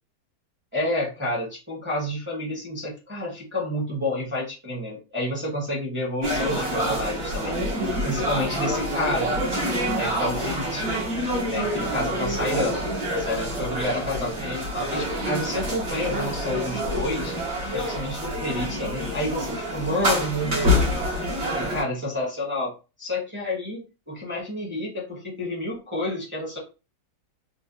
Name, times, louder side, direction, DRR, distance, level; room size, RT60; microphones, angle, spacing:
voice 1, 0.7-7.5 8.0-9.5 10.0-10.9 11.4-12.8 13.1-17.3 17.7-20.9 21.5-22.7 23.0-23.8 24.1-26.6, left 1 dB, 10° right, -3 dB, 0.9 m, -29 dB
sound 1, 6.2-21.8, equal, 40° right, 1.5 m, -27 dB
3.8 x 2.3 x 2.7 m, 0.31 s
omnidirectional pair, 2.0 m